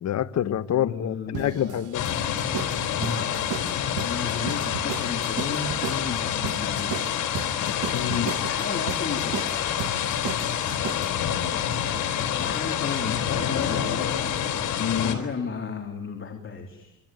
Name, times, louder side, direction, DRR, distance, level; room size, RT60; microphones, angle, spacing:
voice 1, 0.0-2.0 5.1-5.2 7.6-8.3 13.0-13.1 13.5-13.7 14.8-15.2, left 10 dB, 60° left, 1.2 m, -27 dB
voice 2, 0.7-1.8 3.0-7.3 8.1-9.5 12.4-14.0 15.0-17.0, left 5 dB, 40° left, 3.5 m, -34 dB
sound 1, 1.3-11.2, right 11 dB, 80° right, 1.5 m, -36 dB
sound 2, 1.9-15.1, left 9 dB, 85° left, 3.7 m, -27 dB
26.0 x 25.0 x 9.2 m
cardioid pair, 90°, 30 cm